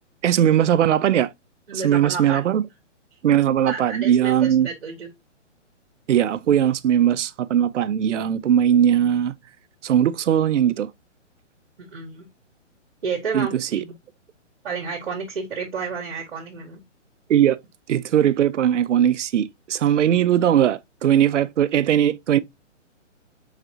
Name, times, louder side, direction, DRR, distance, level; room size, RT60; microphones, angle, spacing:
voice 1, 0.2-1.3 1.7-2.6 3.2-4.7 6.1-9.3 9.8-10.9 13.3-13.5 13.7-13.8 17.3-17.6 17.9-22.4, right 10 dB, 75° right, 0.5 m, -19 dB
voice 2, 1.7-2.5 3.6-5.1 11.8-12.3 13.0-13.9 14.6-16.8, right 5 dB, 50° right, 1.0 m, -31 dB
4.7 x 4.0 x 2.6 m
hypercardioid pair, 175°, 37 cm